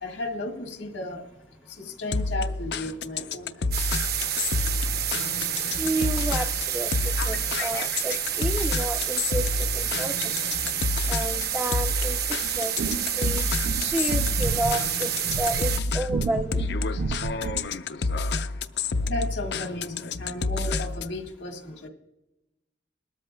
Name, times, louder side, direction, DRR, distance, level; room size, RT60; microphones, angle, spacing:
voice 1, 0.0-1.3 1.7-4.0 19.1-21.9, left 2 dB, 80° left, 2 dB, 1.7 m, -34 dB
sound 1, 2.1-21.2, left 3 dB, 60° left, 0.5 m, -29 dB
sound 2, 3.7-15.8, right 9 dB, 55° right, 0.8 m, -29 dB
voice 2, 5.8-9.5 9.7-10.3 11.1-12.2 12.5-12.8 13.2-13.4 13.8-15.1 15.4-16.6, right 1 dB, 10° right, 3 dB, 0.4 m, -30 dB
sound 3, 12.4-17.8, right 4 dB, 70° right, 0.4 m, -33 dB
21.0 x 13.0 x 2.2 m, 0.95 s
head